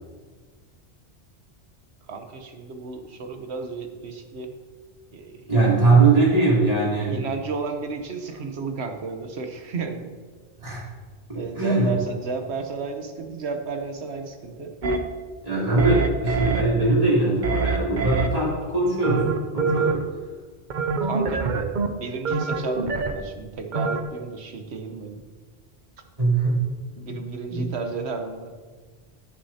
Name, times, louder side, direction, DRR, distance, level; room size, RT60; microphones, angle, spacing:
voice 1, 2.1-4.5 5.1-5.7 7.1-10.1 11.3-14.7 15.5-16.1 21.0-21.4 22.0-25.2 27.0-28.5, right 4 dB, 80° right, 5 dB, 1.2 m, -33 dB
voice 2, 5.5-7.2 10.6-10.8 11.3-11.9 15.4-19.3 19.5-20.0 26.2-26.7 27.5-27.7, right 3 dB, 35° right, -7 dB, 3.4 m, -21 dB
sound 1, 14.8-15.0 15.8-16.6 17.4-18.3 19.0-19.9 20.7-21.9 22.2-23.1 23.7-24.0, right 4 dB, 50° right, 0.8 m, -24 dB
16.5 x 6.4 x 2.8 m, 1.4 s
omnidirectional pair, 1.1 m